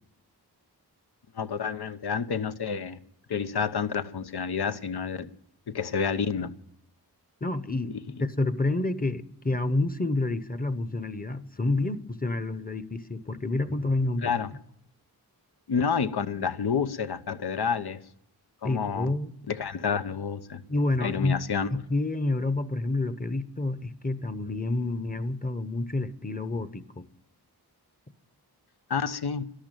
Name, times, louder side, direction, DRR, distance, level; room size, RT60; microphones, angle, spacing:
voice 1, 1.3-3.0 3.3-5.3 5.7-6.5 14.2-14.5 15.7-18.0 18.6-19.1 19.5-20.6 21.0-21.7 28.9-29.5, left 6 dB, 75° left, 1.0 m, -29 dB
voice 2, 7.4-7.9 8.2-14.3 18.6-19.3 20.7-21.4 21.7-27.0, left 2 dB, 20° left, 0.9 m, -28 dB
13.0 x 11.5 x 9.0 m
wide cardioid pair, 105°, 40 cm